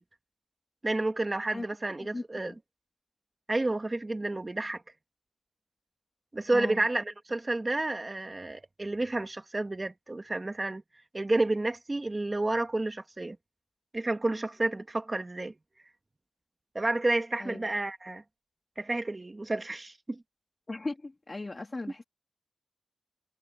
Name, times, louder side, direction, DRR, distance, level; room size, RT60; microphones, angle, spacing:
voice 1, 0.8-2.5 3.5-4.8 6.3-10.8 11.1-13.4 13.9-15.5 16.7-18.2 18.8-20.2, right 2 dB, 25° right, 2.5 m, -30 dB
voice 2, 2.1-2.6 6.5-6.8 17.4-17.6 20.7-22.0, left 2 dB, 30° left, 3.3 m, -38 dB
wide cardioid pair, 105°, 0 cm